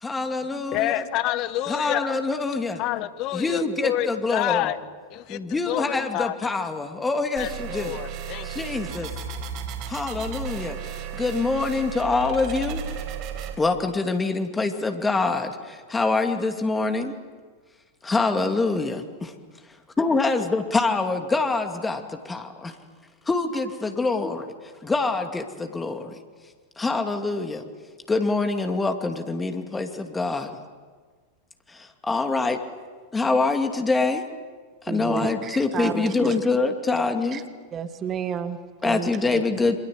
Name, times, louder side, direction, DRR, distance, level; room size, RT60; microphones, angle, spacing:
voice 1, 0.0-1.0 1.7-2.8 3.3-4.7 5.3-7.9 8.4-9.1 9.9-12.8 13.6-17.2 18.0-19.3 20.0-22.8 23.3-26.2 26.8-27.6 28.1-30.6 31.7-32.6 33.1-34.2 34.8-37.4 38.8-39.7, left 3 dB, 10° left, 2.6 m, -25 dB
voice 2, 0.7-2.1 2.8-4.8 5.1-5.4 5.7-6.5 7.4-8.5, left 14 dB, 40° left, 1.4 m, -28 dB
sound 1, 7.4-13.5, right 6 dB, 40° right, 4.6 m, -34 dB
voice 3, 34.9-36.5 37.3-37.4 37.7-39.4, right 7 dB, 25° right, 2.2 m, -31 dB
28.0 x 26.5 x 8.1 m
figure-of-eight pair, 90°, 0 cm